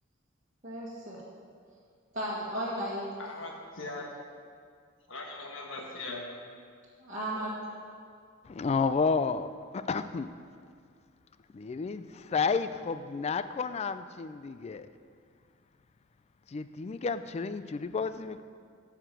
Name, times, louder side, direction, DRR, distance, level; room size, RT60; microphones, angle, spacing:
voice 1, 0.6-1.2 2.1-3.0 7.0-7.5, equal, 40° right, -9 dB, 1.6 m, -34 dB
voice 2, 3.2-4.1 5.1-6.3, left 2 dB, 70° left, 0 dB, 1.3 m, -40 dB
voice 3, 8.4-10.3 11.5-14.9 16.5-18.4, left 5 dB, 30° left, 12 dB, 0.3 m, -31 dB
9.4 x 5.9 x 6.7 m, 2.2 s
head